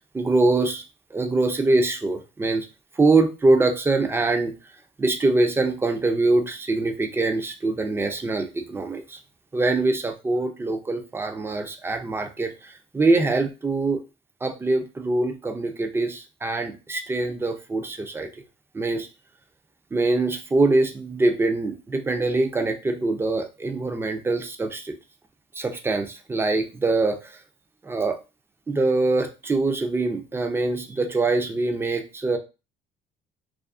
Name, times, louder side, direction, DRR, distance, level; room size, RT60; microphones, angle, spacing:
voice 1, 0.1-0.8 1.1-2.7 3.0-4.5 5.0-9.2 9.5-14.0 14.4-18.3 18.7-19.1 19.9-24.9 25.6-27.4 27.8-28.2 28.7-32.4, right 2 dB, 15° right, 6 dB, 0.4 m, -23 dB
2.5 x 2.4 x 2.4 m, 0.29 s
cardioid pair, 110°, 17 cm